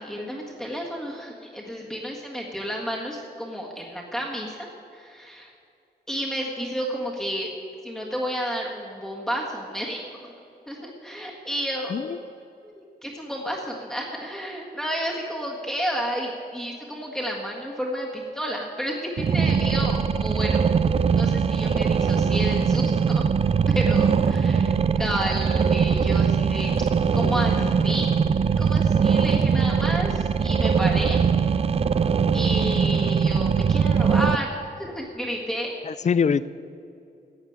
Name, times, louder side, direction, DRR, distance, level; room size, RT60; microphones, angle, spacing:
voice 1, 0.0-4.7 4.9-5.5 6.1-7.5 7.8-10.3 10.7-12.1 12.6-20.7 21.1-23.2 23.7-26.7 27.1-28.1 28.6-31.5 32.3-35.8, equal, 5° left, -3 dB, 1.6 m, -31 dB
sound 1, 19.2-34.4, right 6 dB, 35° right, 0.4 m, -21 dB
voice 2, 27.1-27.7 35.8-36.5, left 6 dB, 45° left, 17 dB, 0.4 m, -25 dB
15.0 x 9.5 x 8.7 m, 2.6 s
wide cardioid pair, 175°, 17 cm